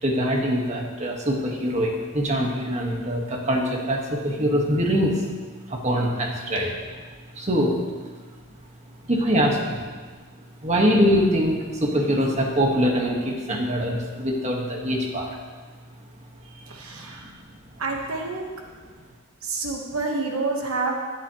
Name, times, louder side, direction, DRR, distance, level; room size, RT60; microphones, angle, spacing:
voice 1, 0.0-5.2 5.7-6.7 7.4-7.7 9.1-9.8 10.6-15.3 17.2-17.3, equal, 30° right, -1 dB, 1.6 m, -23 dB
voice 2, 16.4-17.3 17.8-18.5 19.4-21.0, right 3 dB, 75° right, 0 dB, 1.3 m, -28 dB
12.5 x 11.0 x 3.1 m, 1.5 s
head